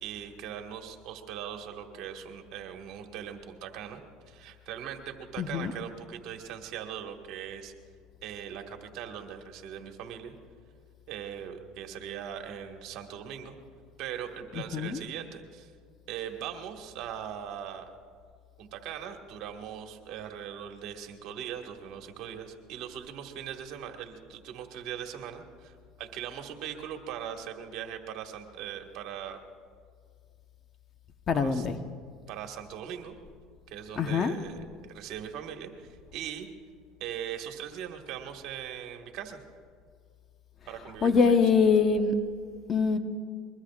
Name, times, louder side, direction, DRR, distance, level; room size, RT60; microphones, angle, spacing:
voice 1, 0.0-7.7 8.2-10.3 11.1-13.5 14.0-15.7 16.1-17.9 18.6-29.4 31.3-31.7 32.3-33.1 33.7-36.5 37.0-39.4 40.7-41.4, right 9 dB, 65° right, 4 dB, 1.7 m, -40 dB
voice 2, 5.4-5.7 14.7-15.0 31.3-31.8 33.9-34.4 41.0-42.1 42.7-43.0, left 5 dB, 40° left, 8 dB, 1.0 m, -23 dB
23.0 x 22.0 x 2.5 m, 2.1 s
supercardioid pair, 105°, 0 cm